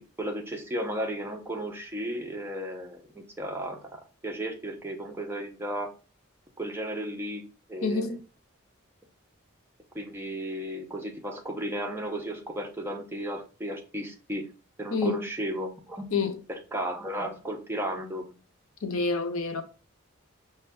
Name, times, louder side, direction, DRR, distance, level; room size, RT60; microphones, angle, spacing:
voice 1, 0.0-5.9 6.6-7.4 7.7-8.1 9.9-14.5 14.8-16.1 16.5-18.4, right 1 dB, 10° right, 0.5 m, -34 dB
voice 2, 7.8-8.2 14.9-15.2 16.1-16.4 18.8-19.6, left 4 dB, 80° left, 0.6 m, -28 dB
5.1 x 2.2 x 3.4 m
head